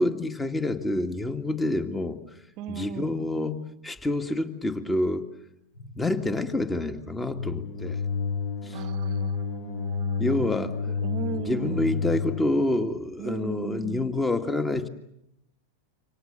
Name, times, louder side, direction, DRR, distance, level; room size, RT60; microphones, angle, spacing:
voice 1, 0.0-2.2 2.7-5.3 6.0-8.0 8.6-8.8 10.2-10.8 11.3-14.9, left 2 dB, 10° left, 9 dB, 1.9 m, -27 dB
voice 2, 2.6-3.3 8.7-10.7 11.0-12.0 13.2-14.0, right 9 dB, 40° right, 13 dB, 1.1 m, -37 dB
sound 1, 5.8-12.5, left 5 dB, 55° left, 3.2 m, -31 dB
28.0 x 25.5 x 6.9 m, 0.80 s
figure-of-eight pair, 90°, 0 cm